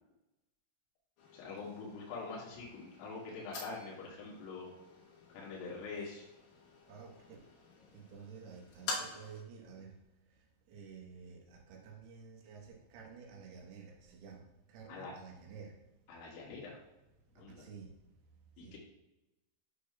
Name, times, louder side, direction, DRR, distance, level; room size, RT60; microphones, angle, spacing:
sound 1, 1.2-9.4, left 3 dB, 70° left, 2.2 m, -48 dB
voice 1, 1.3-4.7 5.3-6.3 14.9-15.1 16.1-16.8 17.3-17.7 18.6-18.8, left 4 dB, 85° left, 4.5 m, -44 dB
voice 2, 6.9-7.5 7.9-15.8 17.3-18.1 18.6-18.8, right 6 dB, 65° right, 2.9 m, -52 dB
10.0 x 6.1 x 2.3 m
omnidirectional pair, 5.7 m